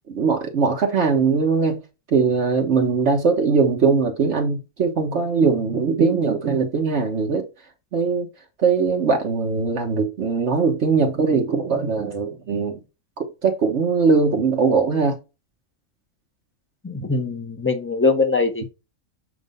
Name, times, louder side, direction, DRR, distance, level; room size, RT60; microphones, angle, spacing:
voice 1, 0.1-1.8 2.1-7.4 7.9-8.3 8.6-12.8 13.2-15.2, right 5 dB, 60° right, 1.2 m, -20 dB
voice 2, 16.8-18.7, left 3 dB, 10° left, 0.8 m, -22 dB
7.4 x 2.6 x 5.2 m
omnidirectional pair, 1.4 m